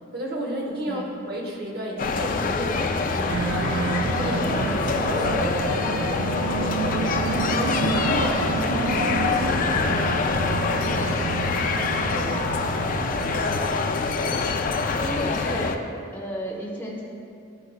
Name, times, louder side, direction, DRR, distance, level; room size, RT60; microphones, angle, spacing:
voice 1, 0.1-3.5 4.1-11.6 12.1-12.6 13.3-13.8, equal, 50° right, 0 dB, 1.1 m, -33 dB
sound 1, 2.0-15.8, left 4 dB, 40° left, 0.3 m, -25 dB
sound 2, 2.7-13.7, equal, 20° right, 1.3 m, -39 dB
sound 3, 3.3-13.4, right 5 dB, 70° right, 0.3 m, -30 dB
voice 2, 14.9-15.8 16.1-17.0, equal, 10° left, -4 dB, 0.9 m, -33 dB
13.0 x 5.4 x 2.2 m, 2.4 s
head